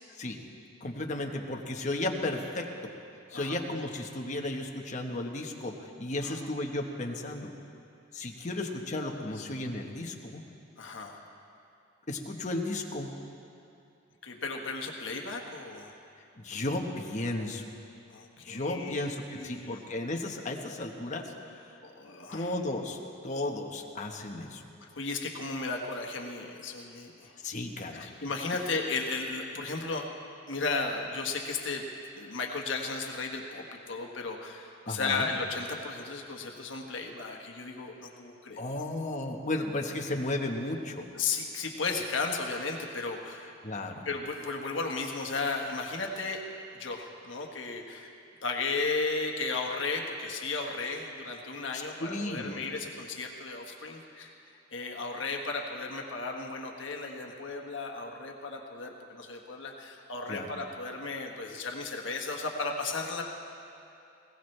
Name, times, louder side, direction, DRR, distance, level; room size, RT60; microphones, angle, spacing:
voice 1, 0.8-2.7 3.3-7.5 8.1-10.4 12.1-13.1 16.4-17.7 18.4-21.3 22.3-23.0 23.2-24.6 27.4-28.1 34.9-35.3 38.6-41.1 43.6-44.1 52.0-52.6 60.3-60.5, left 2 dB, 40° left, 2 dB, 1.2 m, -34 dB
voice 2, 10.8-11.2 14.2-16.0 18.1-19.8 21.8-22.5 24.8-27.4 27.9-30.1 30.5-31.8 32.1-38.9 41.1-43.5 44.0-46.4 46.8-48.1 48.4-63.2, left 3 dB, 70° left, 1 dB, 1.4 m, -35 dB
20.0 x 17.5 x 3.3 m, 2.6 s
head